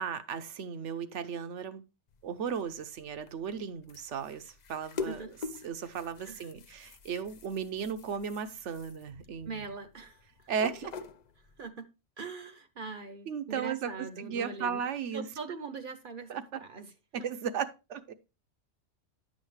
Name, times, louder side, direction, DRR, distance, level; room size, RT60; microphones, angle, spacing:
voice 1, 0.0-1.8 2.2-5.3 5.6-9.6 10.5-10.9 13.3-15.3 16.3-16.4 17.1-18.1, right 7 dB, 75° right, 1.1 m, -35 dB
sound 1, 2.1-11.7, left 5 dB, 50° left, 0.5 m, -45 dB
voice 2, 9.4-10.2 11.6-11.8 12.2-14.8 15.1-16.9 17.2-17.3, right 4 dB, 50° right, 0.9 m, -41 dB
10.5 x 6.4 x 3.2 m
omnidirectional pair, 1.2 m